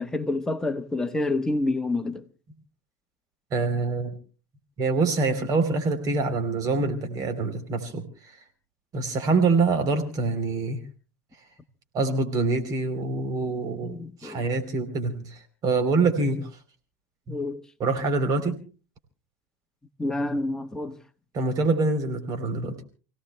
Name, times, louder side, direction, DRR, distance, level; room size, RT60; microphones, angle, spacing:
voice 1, 0.0-2.3 13.8-14.5 17.3-17.6 20.0-21.0, left 2 dB, 5° left, 1.2 m, -28 dB
voice 2, 3.5-4.1 4.8-8.0 8.9-10.8 11.9-16.5 17.3-17.4 17.8-18.6 21.3-22.8, right 3 dB, 40° right, 3.5 m, -25 dB
29.5 x 17.5 x 2.2 m
supercardioid pair, 120°, 9 cm